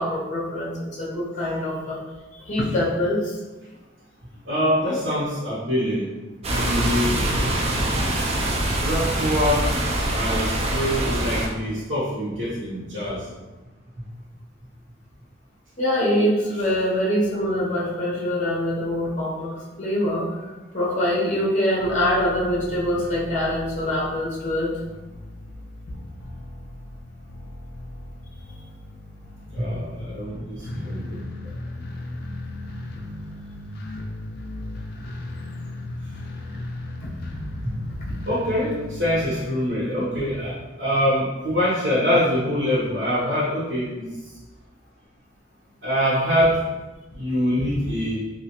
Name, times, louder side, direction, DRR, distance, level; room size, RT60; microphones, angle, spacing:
voice 1, 0.0-2.0 2.4-3.4 15.8-20.4 20.7-24.7 37.0-37.4, left 1 dB, 40° left, -5 dB, 0.8 m, -24 dB
voice 2, 4.4-6.1 6.5-7.1 8.7-9.8 10.1-13.3 14.0-14.1 29.6-31.3 37.6-37.8 38.2-44.1 45.8-46.6 47.1-48.2, equal, 75° right, -9 dB, 0.8 m, -24 dB
sound 1, 6.4-11.5, right 1 dB, 35° right, 0.4 m, -24 dB
sound 2, 21.8-39.4, left 1 dB, 55° left, 0.4 m, -37 dB
2.9 x 2.3 x 2.8 m, 1.1 s
head